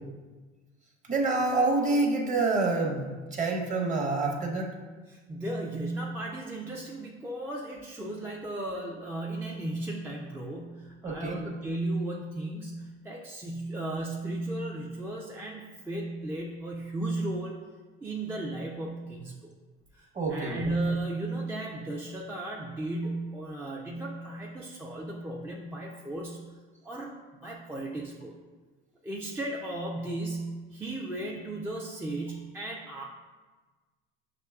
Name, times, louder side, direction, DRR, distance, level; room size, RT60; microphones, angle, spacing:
voice 1, 1.1-3.0 3.3-4.7 11.0-11.4 20.1-20.7, right 3 dB, 25° right, 0 dB, 0.8 m, -27 dB
voice 2, 5.1-17.6 18.0-19.5 19.9-26.4 26.8-28.3 29.0-33.0, right 2 dB, 10° right, -3 dB, 0.3 m, -35 dB
5.9 x 2.8 x 2.3 m, 1.3 s
supercardioid pair, 95°, 31 cm